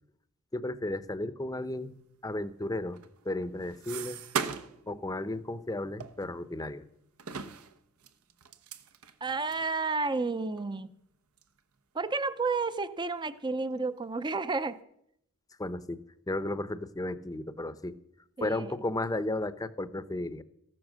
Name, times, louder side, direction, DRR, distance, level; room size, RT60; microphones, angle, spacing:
voice 1, 0.5-1.9 2.2-3.0 3.2-4.2 4.9-6.8 15.6-16.0 16.3-17.9 18.4-20.4, left 2 dB, 15° left, 13 dB, 0.7 m, -34 dB
sound 1, 2.9-4.9 5.2-5.4 6.0-6.8 7.2-9.7 10.2-10.3 10.6-10.7 11.4-11.6 12.0-12.7 13.1-13.8, right 6 dB, 75° right, 1.0 m, -39 dB
voice 2, 9.2-10.9 11.9-14.8 18.4-18.7, right 3 dB, 20° right, 13 dB, 0.6 m, -31 dB
14.5 x 12.5 x 6.4 m, 0.74 s
head